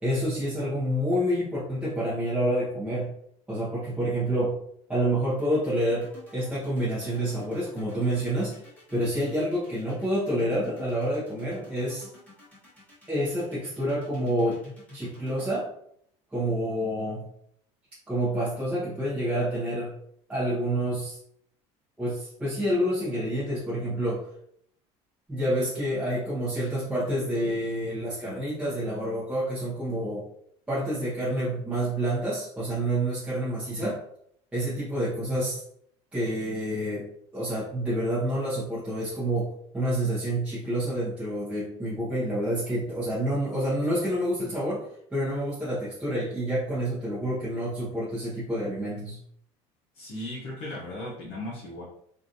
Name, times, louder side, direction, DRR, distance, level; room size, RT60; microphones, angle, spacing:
voice 1, 0.0-3.1 3.5-4.6 4.9-8.6 8.9-12.1 13.1-14.6 14.9-15.7 16.3-17.3 18.1-19.9 20.3-21.2 22.0-24.3 25.3-30.3 30.7-34.0 34.5-35.6 36.1-37.1 37.3-49.2, right 1 dB, 10° right, -10 dB, 1.0 m, -28 dB
sound 1, 5.3-15.6, left 2 dB, 10° left, 1.4 m, -49 dB
voice 2, 49.9-51.8, left 1 dB, 50° left, -6 dB, 0.9 m, -37 dB
3.1 x 2.6 x 2.6 m, 0.69 s
cardioid pair, 150°, 14 cm